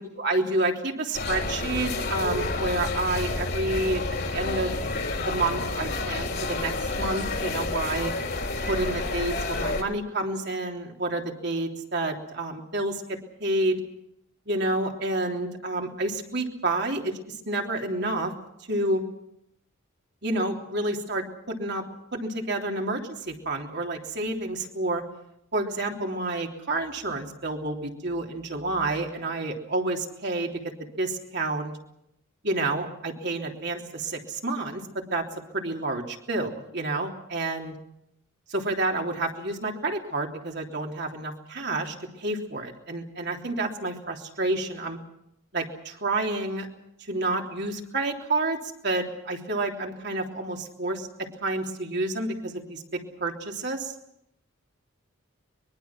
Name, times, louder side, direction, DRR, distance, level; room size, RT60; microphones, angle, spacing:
voice 1, 0.1-4.7 5.3-6.7 7.0-8.1 8.6-13.8 14.5-18.3 18.7-19.0 20.2-21.8 22.1-25.0 25.5-30.7 31.0-31.7 32.4-34.8 35.1-35.2 35.5-37.7 38.5-45.0 45.5-46.7 47.0-48.6 48.8-51.1 51.4-53.9, right 2 dB, 55° right, 1 dB, 3.4 m, -29 dB
sound 1, 1.1-9.8, left 2 dB, 55° left, 3.4 m, -29 dB
23.5 x 23.0 x 6.1 m, 0.79 s
head